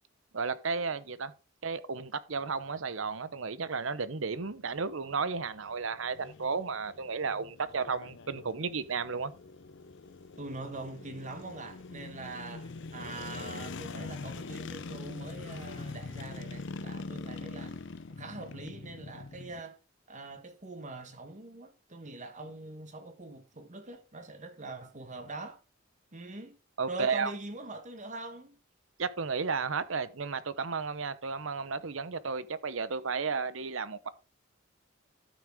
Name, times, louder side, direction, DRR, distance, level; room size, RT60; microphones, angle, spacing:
voice 1, 0.3-1.3 1.6-9.3 26.8-27.3 29.0-34.1, right 5 dB, 70° right, 0.8 m, -33 dB
sound 1, 4.4-19.6, left 3 dB, 60° left, 0.7 m, -43 dB
voice 2, 10.4-17.8 18.2-19.8 20.1-25.6 26.1-26.6 26.9-28.6, right 2 dB, 40° right, 1.6 m, -43 dB
12.5 x 6.2 x 3.6 m
head